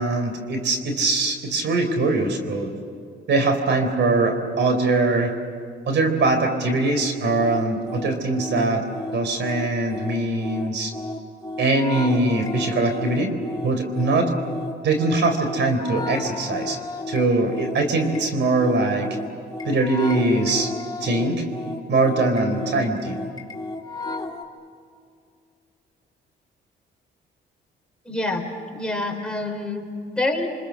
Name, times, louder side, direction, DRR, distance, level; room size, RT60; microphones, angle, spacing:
voice 1, 0.0-2.7 3.3-5.3 5.9-8.8 9.1-10.9 11.6-13.3 13.6-14.3 14.8-16.8 17.1-19.1 19.6-20.7 21.0-21.4 21.9-23.2, right 2 dB, 65° right, 6 dB, 3.9 m, -22 dB
sound 1, 7.4-24.4, left 2 dB, 20° left, 2.6 m, -33 dB
voice 2, 28.0-29.9 30.2-30.5, left 2 dB, 5° left, 1 dB, 4.3 m, -26 dB
28.5 x 25.5 x 6.5 m, 2.4 s
cardioid pair, 90°, 20 cm